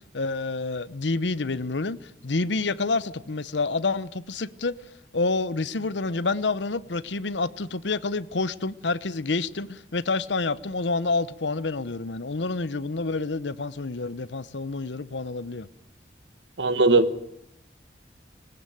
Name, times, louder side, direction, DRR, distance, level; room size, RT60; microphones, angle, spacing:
voice 1, 0.1-4.8 5.1-15.7, left 3 dB, 85° left, 0.9 m, -28 dB
voice 2, 16.6-17.2, right 3 dB, 85° right, 1.5 m, -19 dB
19.5 x 19.0 x 9.2 m
head